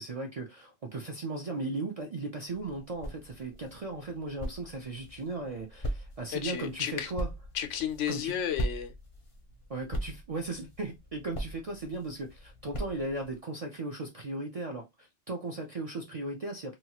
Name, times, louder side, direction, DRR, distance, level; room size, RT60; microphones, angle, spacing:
voice 1, 0.0-7.3 8.1-8.4 9.7-16.7, right 2 dB, 50° right, 0.4 m, -37 dB
sound 1, 2.5-13.4, equal, 35° left, 0.5 m, -40 dB
voice 2, 6.3-7.1 7.5-8.9, left 9 dB, 85° left, 0.9 m, -32 dB
2.9 x 2.3 x 2.8 m
omnidirectional pair, 1.2 m